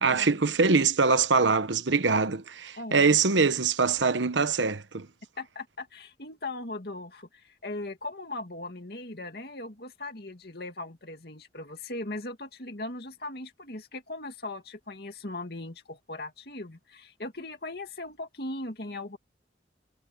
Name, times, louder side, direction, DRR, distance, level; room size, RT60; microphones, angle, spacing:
voice 1, 0.0-5.1, right 4 dB, 85° right, 1.1 m, -23 dB
voice 2, 2.8-3.2 5.4-19.2, left 2 dB, 60° left, 2.4 m, -39 dB
head